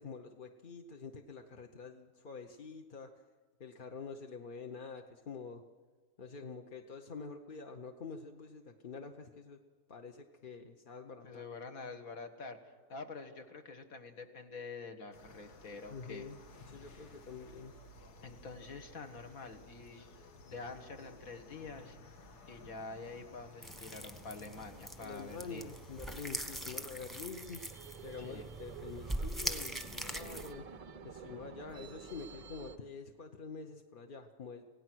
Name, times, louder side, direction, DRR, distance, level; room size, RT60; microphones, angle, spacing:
voice 1, 0.0-3.1 3.6-5.6 6.2-9.6 9.9-11.4 15.9-16.4 16.7-17.7 25.0-27.6 28.0-30.7 31.0-34.6, left 5 dB, 40° left, 4 dB, 0.8 m, -47 dB
voice 2, 11.2-12.6 12.9-16.3 16.8-17.1 18.2-20.2 20.4-22.0 22.5-25.7 28.2-28.5, left 4 dB, 60° left, 6 dB, 2.0 m, -47 dB
sound 1, 15.1-26.8, left 2 dB, 80° left, 2.0 m, -56 dB
sound 2, 23.6-30.5, right 1 dB, ahead, 1.0 m, -42 dB
sound 3, 27.3-32.8, right 6 dB, 45° right, 0.4 m, -49 dB
27.0 x 17.5 x 6.2 m, 1.5 s
omnidirectional pair, 1.6 m